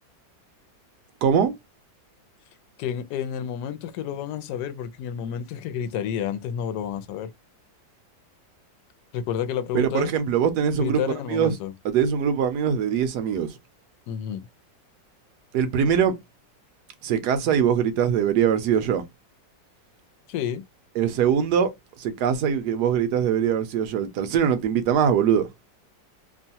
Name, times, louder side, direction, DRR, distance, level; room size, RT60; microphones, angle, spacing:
voice 1, 1.2-1.5 9.7-11.0 11.3-11.5 11.8-13.6 15.5-16.1 17.0-19.0 21.0-21.7 22.0-25.5, right 8 dB, 70° right, 1.1 m, -22 dB
voice 2, 2.8-7.3 9.1-10.1 10.7-11.7 14.1-14.5 20.3-20.6, left 9 dB, 75° left, 1.1 m, -30 dB
3.0 x 2.2 x 2.7 m
omnidirectional pair, 2.0 m